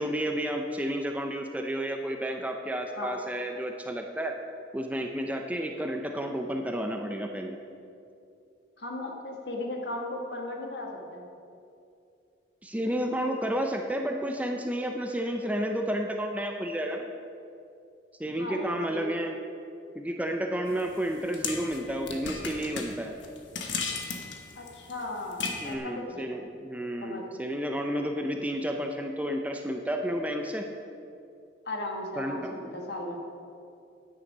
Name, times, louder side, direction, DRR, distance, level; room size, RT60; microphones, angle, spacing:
voice 1, 0.0-4.3 4.7-7.6 12.6-17.1 18.2-19.3 20.0-23.1 25.6-30.6 32.2-32.7, equal, 10° right, 3 dB, 0.5 m, -31 dB
voice 2, 8.8-11.2 18.4-19.1 24.5-26.4 27.0-27.2 31.6-33.2, left 1 dB, 65° left, 1 dB, 1.6 m, -36 dB
sound 1, 20.7-25.8, left 4 dB, 80° left, 1.2 m, -36 dB
9.8 x 9.4 x 5.5 m, 2.6 s
head